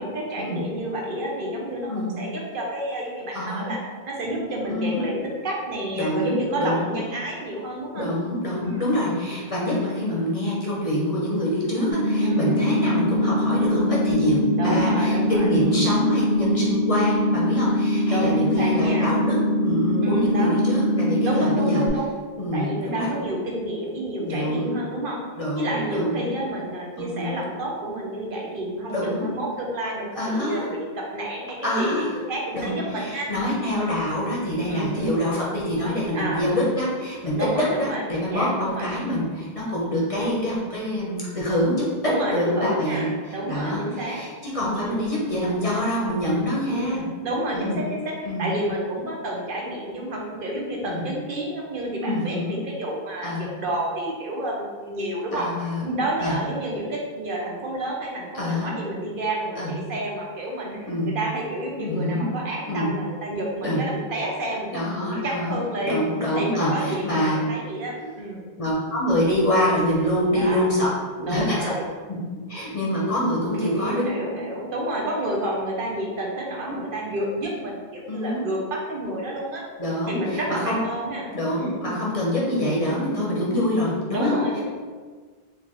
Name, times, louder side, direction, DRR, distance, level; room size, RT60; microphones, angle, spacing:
voice 1, 0.0-1.9 2.2-3.8 4.1-8.1 8.5-8.9 12.2-12.7 14.6-15.5 18.0-19.1 20.0-20.6 21.2-22.1 22.5-25.2 25.5-33.3 34.7-35.2 36.1-36.4 37.4-38.9 42.0-44.2 44.7-45.1 46.6-55.5 55.8-66.0 66.3-68.5 70.3-70.7 71.2-71.9 73.5-79.6 80.1-81.3 81.6-81.9 84.1-84.6, right 1 dB, 60° right, -2 dB, 0.8 m, -30 dB
voice 2, 3.3-3.7 4.7-5.0 5.9-7.0 7.9-19.4 19.6-21.9 22.4-23.1 24.2-24.7 25.4-26.2 27.0-27.4 28.9-29.3 30.2-30.7 31.6-32.2 32.5-41.7 42.3-47.0 47.5-47.8 48.2-48.5 50.8-51.0 52.0-52.6 53.2-53.5 55.3-55.9 56.2-56.4 58.3-58.7 59.6-59.7 60.9-61.2 61.8-62.2 62.7-62.9 63.6-63.8 64.7-65.6 65.9-67.4 68.6-70.9 71.2-71.7 72.1-72.2 72.5-74.1 76.6-76.7 78.1-78.4 79.8-80.8 81.3-84.4, left 1 dB, 40° left, -5 dB, 0.7 m, -25 dB
sound 1, 11.9-21.9, left 1 dB, 85° left, 1.0 m, -22 dB
4.4 x 2.5 x 3.0 m, 1.5 s
omnidirectional pair, 1.0 m